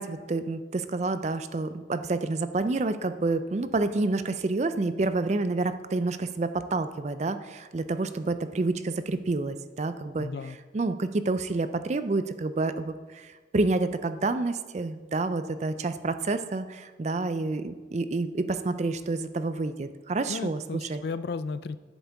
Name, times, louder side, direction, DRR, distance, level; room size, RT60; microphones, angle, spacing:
voice 1, 0.0-10.3 10.7-20.6 20.9-21.0, right 3 dB, 35° right, 11 dB, 0.4 m, -28 dB
voice 2, 10.2-10.6 20.3-21.8, left 4 dB, 60° left, 14 dB, 0.4 m, -34 dB
10.5 x 8.0 x 3.5 m, 1.3 s
head